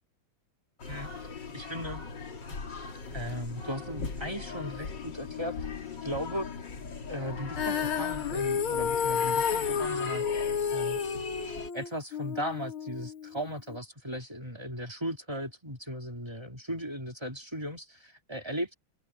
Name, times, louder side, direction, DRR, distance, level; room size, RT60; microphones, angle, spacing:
sound 1, 0.8-11.7, left 5 dB, 55° left, 3.0 m, -39 dB
voice 1, 1.5-2.0 3.1-5.5 6.0-6.5 7.1-11.0 11.7-18.7, equal, 10° right, 2.8 m, -37 dB
Female singing, 7.6-13.8, left 7 dB, 75° left, 2.2 m, -31 dB
omnidirectional pair, 2.4 m